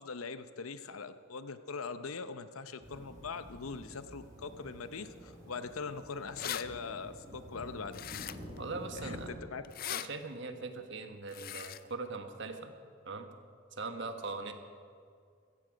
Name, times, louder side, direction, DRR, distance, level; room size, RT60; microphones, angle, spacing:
voice 1, 0.0-8.0 8.9-9.6, left 4 dB, 80° left, 11 dB, 0.8 m, -42 dB
sound 1, 2.8-9.3, equal, 35° right, 4.9 m, -49 dB
sound 2, 6.4-6.6 7.9-8.6 9.6-10.1 11.3-11.8, left 11 dB, 45° left, 0.4 m, -39 dB
voice 2, 8.6-9.3 9.9-12.7 13.0-13.3 13.7-14.5, right 3 dB, 55° right, 7 dB, 1.3 m, -40 dB
16.0 x 14.0 x 5.1 m, 2.2 s
head